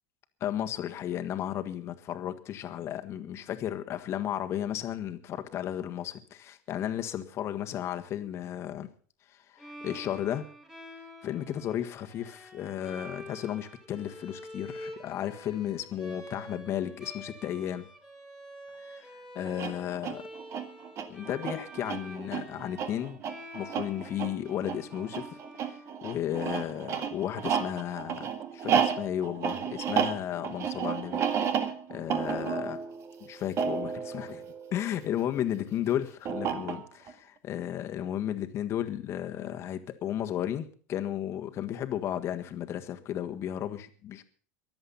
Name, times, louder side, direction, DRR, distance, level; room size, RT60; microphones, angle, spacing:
voice 1, 0.4-8.9 9.5-10.4 11.2-17.9 18.8-20.2 21.1-23.2 23.5-25.4 25.6-31.6 31.9-32.8 33.2-34.4 34.7-44.2, left 11 dB, 40° left, 7 dB, 1.6 m, -34 dB
Bowed string instrument, 9.6-26.5, equal, 10° right, 2.7 m, -47 dB
sound 1, 19.5-35.2 36.3-37.1, right 7 dB, 40° right, 1.9 m, -32 dB
23.0 x 7.9 x 5.6 m, 0.42 s
supercardioid pair, 135°, 7 cm